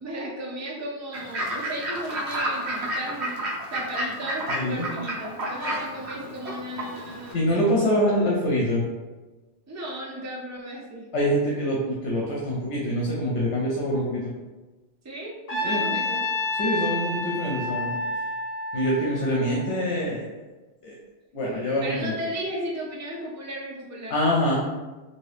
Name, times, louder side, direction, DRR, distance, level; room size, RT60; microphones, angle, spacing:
voice 1, 0.0-3.4 3.7-7.6 9.7-11.1 15.0-16.2 21.8-24.2, right 1 dB, 20° right, -3 dB, 0.4 m, -35 dB
Fowl / Bird, 1.1-7.3, right 1 dB, 70° right, 1.0 m, -31 dB
voice 2, 4.5-4.9 7.3-8.8 11.1-14.3 15.6-16.0 16.6-18.0 18.7-20.2 20.8-20.9 21.3-22.2 24.1-24.6, equal, 75° left, -4 dB, 0.9 m, -25 dB
Trumpet, 15.5-19.7, left 2 dB, 35° left, 0.8 m, -29 dB
2.8 x 2.7 x 3.3 m, 1.2 s
omnidirectional pair, 1.2 m